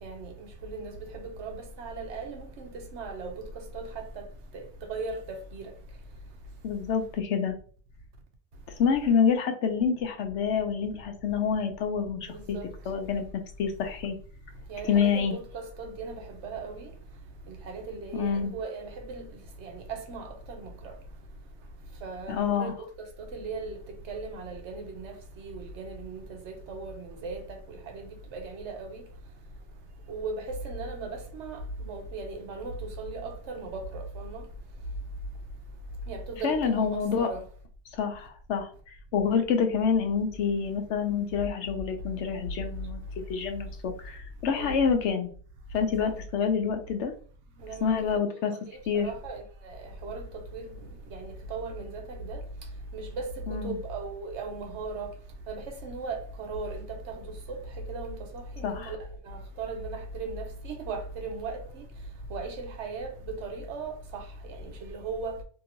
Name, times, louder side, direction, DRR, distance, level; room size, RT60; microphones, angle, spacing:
voice 1, 0.0-0.3 0.6-3.4 3.7-4.0 4.5-5.6 12.3-12.7 14.7-16.9 17.5-19.3 19.6-20.9 22.0-22.9 23.3-23.8 24.1-29.0 30.1-31.6 31.9-34.4 36.1-37.4 44.6-44.9 46.0-46.1 47.6-48.0 48.7-50.2 50.5-50.7 51.1-52.4 52.9-55.1 55.5-57.1 57.9-59.0 59.3-61.8 62.3-65.3, right 3 dB, 80° right, 1.0 m, -37 dB
voice 2, 6.6-7.5 8.8-12.6 12.9-14.2 14.9-15.4 18.1-18.5 22.3-22.7 36.4-37.3 37.9-45.3 45.7-47.1 47.8-48.5 48.9-49.1 53.5-53.8 58.6-58.9, left 6 dB, 85° left, 0.9 m, -27 dB
2.9 x 2.7 x 2.8 m
omnidirectional pair, 1.2 m